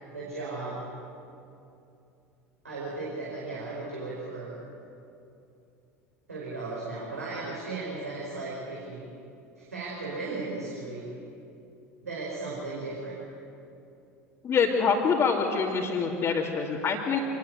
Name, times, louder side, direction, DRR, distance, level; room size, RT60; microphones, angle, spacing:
voice 1, 0.1-0.9 2.6-4.6 6.3-9.0 9.6-11.1 12.0-13.2, right 3 dB, 80° right, -5 dB, 5.0 m, -36 dB
voice 2, 14.4-17.2, left 5 dB, 30° left, -4 dB, 2.8 m, -25 dB
26.5 x 20.0 x 8.2 m, 2.7 s
figure-of-eight pair, 70°, 8 cm